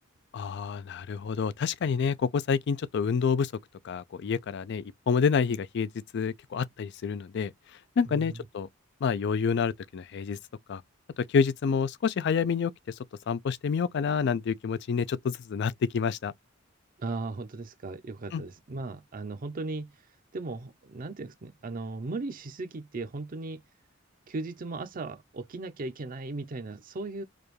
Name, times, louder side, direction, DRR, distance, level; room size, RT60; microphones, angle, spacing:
voice 1, 0.3-3.5 3.8-5.9 6.1-7.5 8.0-8.7 9.0-10.4 10.7-10.8 11.3-12.7 13.3-16.3 18.3-18.4, left 6 dB, 60° left, 0.4 m, -28 dB
voice 2, 8.1-8.5 17.0-19.9 20.3-23.6 24.3-27.2, right 3 dB, 45° right, 0.5 m, -37 dB
4.9 x 2.3 x 3.1 m
head